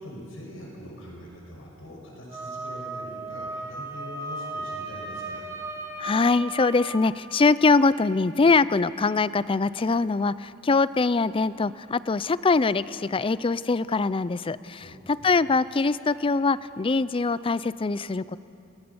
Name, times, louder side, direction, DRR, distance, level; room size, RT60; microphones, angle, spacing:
voice 1, 0.0-5.4 14.8-15.3, equal, 80° left, -2 dB, 6.1 m, -43 dB
Wind instrument woodwind instrument, 2.3-7.1, right 2 dB, 15° right, 2.2 m, -36 dB
voice 2, 6.0-18.4, left 3 dB, 25° left, 17 dB, 0.4 m, -23 dB
28.5 x 20.0 x 7.1 m, 2.8 s
head